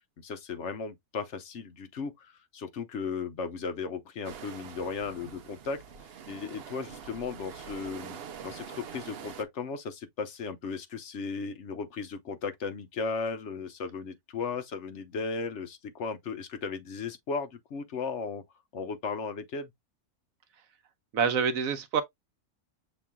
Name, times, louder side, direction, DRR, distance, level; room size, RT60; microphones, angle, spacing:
voice 1, 0.2-5.8 6.3-18.4 18.7-19.7, left 5 dB, 60° left, 1.0 m, -36 dB
sound 1, 4.2-9.4, right 7 dB, 55° right, 0.7 m, -45 dB
voice 2, 21.1-22.0, right 6 dB, 70° right, 1.1 m, -26 dB
7.0 x 3.0 x 2.2 m
omnidirectional pair, 1.5 m